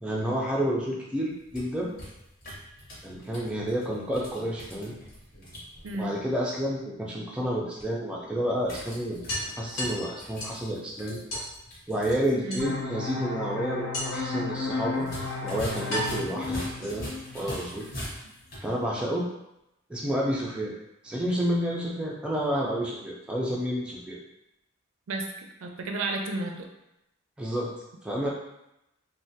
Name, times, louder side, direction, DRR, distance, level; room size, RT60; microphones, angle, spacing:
voice 1, 0.0-1.9 3.0-5.0 6.0-9.2 9.6-11.2 11.9-15.1 15.4-17.1 17.3-17.9 18.6-19.2 19.9-20.7 21.0-24.2 27.4-27.7 28.0-28.3, equal, 5° right, -4 dB, 0.3 m, -30 dB
sound 1, 1.3-6.0 8.6-12.4 12.7-12.8 15.0-18.7, equal, 45° left, 0.8 m, -42 dB
sound 2, 5.3-6.3 7.8-7.9 8.3-8.4 8.7-8.8 9.3-10.7 11.3-11.5 12.5-13.1 13.9-14.4 15.2-15.3 15.9-17.3, equal, 80° left, 1.1 m, -35 dB
voice 2, 5.8-6.2 12.4-12.7 25.1-25.2 25.6-26.7, right 2 dB, 70° right, 2 dB, 0.4 m, -32 dB
sound 3, 12.6-18.0, left 3 dB, 60° left, 0.4 m, -34 dB
3.2 x 2.1 x 2.7 m, 0.87 s
head